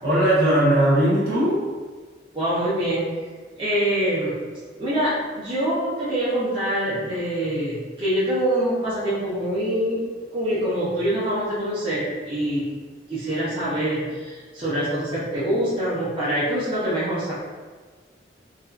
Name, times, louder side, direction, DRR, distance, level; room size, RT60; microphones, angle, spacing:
voice 1, 0.0-1.6, right 1 dB, 55° right, -8 dB, 0.9 m, -19 dB
voice 2, 2.3-3.0 3.6-4.4 4.8-10.0 10.3-12.6 13.1-17.3, right 1 dB, 30° right, -11 dB, 0.6 m, -25 dB
2.6 x 2.2 x 2.4 m, 1.4 s
head